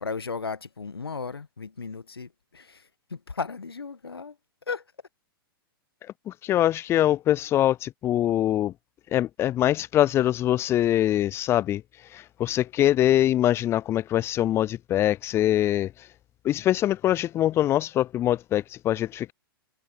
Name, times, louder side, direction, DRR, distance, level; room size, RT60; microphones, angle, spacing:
voice 1, 0.0-4.4 4.7-4.8, left 5 dB, 80° left, 1.3 m, -35 dB
voice 2, 6.3-8.7 9.1-11.8 12.1-15.9 16.4-19.3, left 12 dB, 20° left, 0.4 m, -23 dB
figure-of-eight pair, 105°, 13 cm